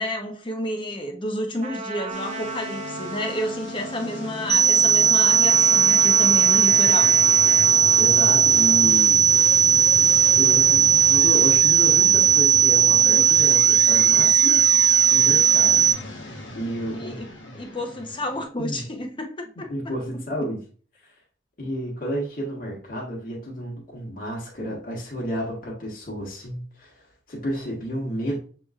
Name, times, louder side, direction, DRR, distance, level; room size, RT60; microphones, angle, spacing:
voice 1, 0.0-7.2 16.9-17.3 17.5-19.7, left 1 dB, 25° left, 0.7 m, -30 dB
Trumpet, 1.6-8.9, right 2 dB, 35° right, 0.6 m, -36 dB
sound 1, 2.1-18.4, left 1 dB, 80° left, 1.1 m, -36 dB
sound 2, 4.5-15.9, right 8 dB, 15° right, 1.0 m, -17 dB
voice 2, 8.0-9.2 10.4-14.7 15.1-15.8 16.5-17.2 18.6-18.8 19.6-20.6 21.6-27.0 27.3-28.4, equal, 50° left, 1.4 m, -31 dB
6.8 x 3.1 x 2.4 m
head